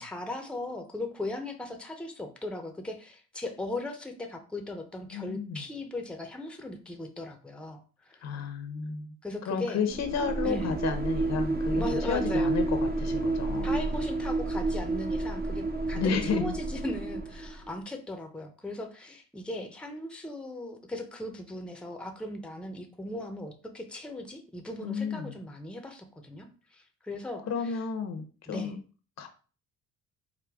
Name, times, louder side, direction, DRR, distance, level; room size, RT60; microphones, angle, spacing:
voice 1, 0.0-7.8 8.1-8.2 9.2-9.8 10.4-10.7 11.8-12.5 13.6-26.5 26.7-27.8 28.5-28.7, left 2 dB, 5° left, 4 dB, 0.7 m, -38 dB
voice 2, 5.1-5.6 8.2-9.1 9.5-13.7 15.9-16.5 24.8-25.4 27.5-28.8 29.2-29.3, left 6 dB, 60° left, 6 dB, 0.8 m, -32 dB
sound 1, 9.9-17.7, right 2 dB, 30° right, 0.6 m, -30 dB
4.8 x 2.2 x 3.5 m, 0.37 s
cardioid pair, 90°, 30 cm